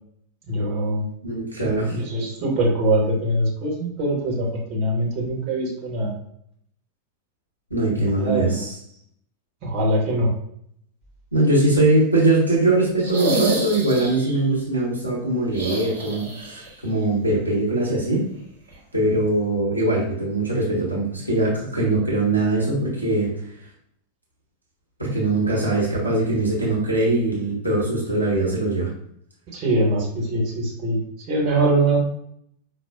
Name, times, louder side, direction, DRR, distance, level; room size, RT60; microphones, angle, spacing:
voice 1, 0.5-1.1 1.9-6.1 7.9-8.7 9.6-10.3 29.5-31.0 31.3-32.0, right 1 dB, 40° right, -2 dB, 1.0 m, -23 dB
voice 2, 1.2-2.0 7.7-8.8 11.3-18.2 18.9-23.3 25.0-28.9, right 2 dB, 85° right, -4 dB, 0.9 m, -21 dB
sound 1, 13.0-14.4 15.5-16.7 16.9-17.0 18.7-18.8, right 2 dB, 70° right, 1.1 m, -27 dB
4.7 x 2.1 x 2.3 m, 0.70 s
figure-of-eight pair, 90°, 0 cm